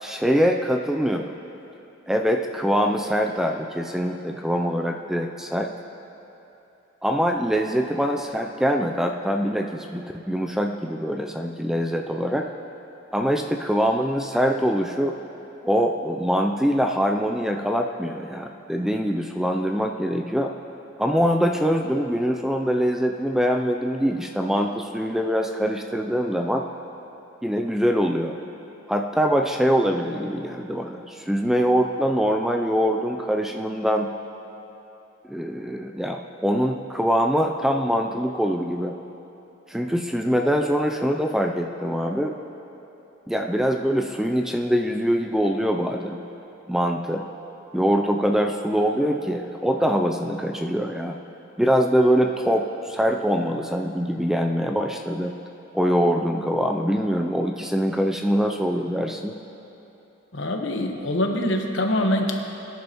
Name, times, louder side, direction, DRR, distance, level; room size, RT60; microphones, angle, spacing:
voice 1, 0.0-1.4 2.1-5.7 7.0-12.5 13.1-15.2 15.6-20.5 21.0-26.7 27.4-28.4 28.9-34.1 35.3-38.9 39.7-42.4 43.3-46.2 46.7-47.2 47.7-51.2 51.6-55.3 55.7-59.4, equal, ahead, 3 dB, 0.3 m, -23 dB
voice 2, 60.3-62.4, left 1 dB, 65° left, 3 dB, 1.1 m, -24 dB
23.0 x 10.5 x 3.0 m, 3.0 s
head